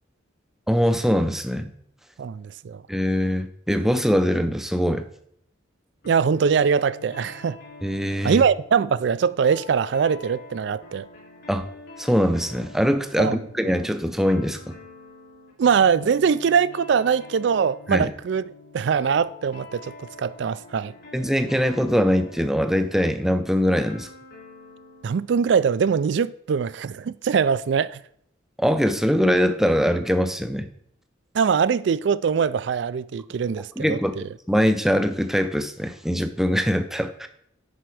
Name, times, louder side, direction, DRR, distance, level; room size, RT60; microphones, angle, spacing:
voice 1, 0.7-1.7 2.9-5.1 7.8-8.4 11.5-11.7 12.0-14.8 17.9-18.1 21.1-24.1 28.6-30.7 33.8-34.2 34.5-37.3, equal, ahead, 0.5 m, -22 dB
voice 2, 2.2-2.8 6.1-7.6 8.2-11.1 13.2-13.4 15.6-18.4 18.7-19.9 20.2-20.9 25.0-28.0 31.3-34.2, right 6 dB, 60° right, 0.3 m, -22 dB
sound 1, 6.0-25.2, left 3 dB, 55° left, 3.7 m, -46 dB
10.0 x 4.6 x 4.8 m
head